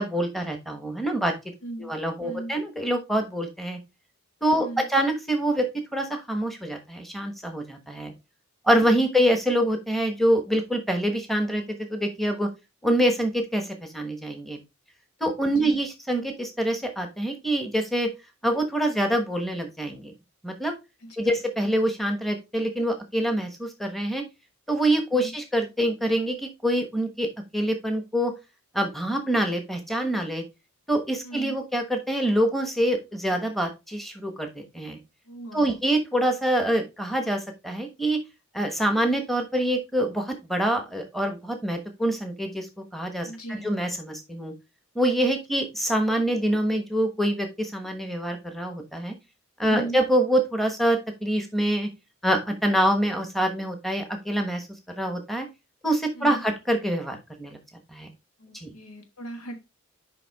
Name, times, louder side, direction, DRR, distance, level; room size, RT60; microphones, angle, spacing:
voice 1, 0.0-1.3 1.8-3.8 4.4-8.1 8.6-11.6 11.9-12.5 12.8-14.6 15.2-18.1 18.4-20.1 20.4-20.7 21.2-24.2 24.7-27.3 27.5-28.3 28.7-30.4 30.9-35.0 35.5-38.2 38.5-42.7 42.9-44.5 44.9-49.1 49.6-51.9 52.2-54.7 55.0-55.5 55.8-57.6 57.9-58.1 58.5-58.7, right 1 dB, ahead, 1.2 m, -25 dB
voice 2, 1.6-1.9 2.2-2.5 4.5-4.9 15.5-15.8 21.0-21.4 25.1-25.3 31.2-31.5 35.3-35.8 43.2-43.7 49.7-50.0 56.1-56.4 58.4-59.6, right 1 dB, 85° left, 1.6 m, -38 dB
7.0 x 5.2 x 3.5 m
head